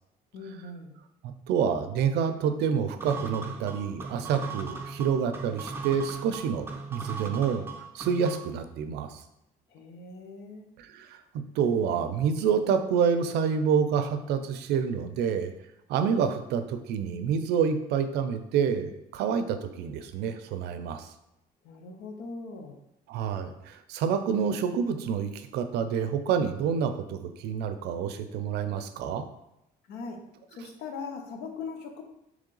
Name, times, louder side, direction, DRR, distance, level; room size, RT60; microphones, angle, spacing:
voice 1, 0.3-1.0 9.7-10.7 21.6-22.8 29.9-30.2 30.5-32.0, left 4 dB, 80° left, 4 dB, 0.8 m, -40 dB
voice 2, 1.2-7.6 7.9-9.2 10.8-11.2 11.6-15.5 15.9-21.1 23.1-29.2, right 7 dB, 80° right, 9 dB, 0.4 m, -28 dB
sound 1, 3.0-8.6, right 4 dB, 15° right, 0.6 m, -38 dB
3.7 x 3.1 x 3.8 m, 0.84 s
cardioid pair, 110°, 17 cm